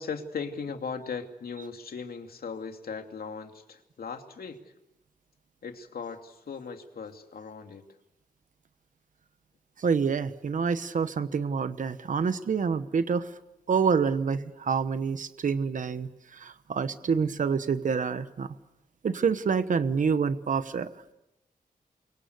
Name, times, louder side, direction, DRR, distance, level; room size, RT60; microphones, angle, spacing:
voice 1, 0.0-4.7 5.6-7.8, left 5 dB, 85° left, 5 dB, 2.7 m, -38 dB
voice 2, 9.8-13.3 13.7-18.5 19.0-20.9, right 6 dB, 60° right, 11 dB, 1.1 m, -27 dB
29.5 x 24.5 x 8.2 m, 0.90 s
wide cardioid pair, 165°, 15 cm